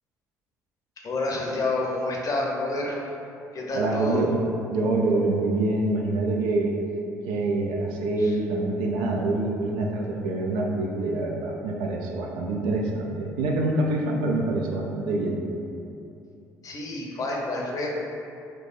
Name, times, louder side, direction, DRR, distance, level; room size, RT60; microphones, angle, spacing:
voice 1, 1.0-3.0 3.5-4.3 8.2-8.4 16.6-17.9, left 2 dB, 45° left, -2 dB, 0.7 m, -29 dB
voice 2, 3.7-4.4 4.7-6.7 7.3-15.4, right 2 dB, 75° right, 0 dB, 0.4 m, -25 dB
4.5 x 2.2 x 2.5 m, 2.7 s
hypercardioid pair, 55°, 8 cm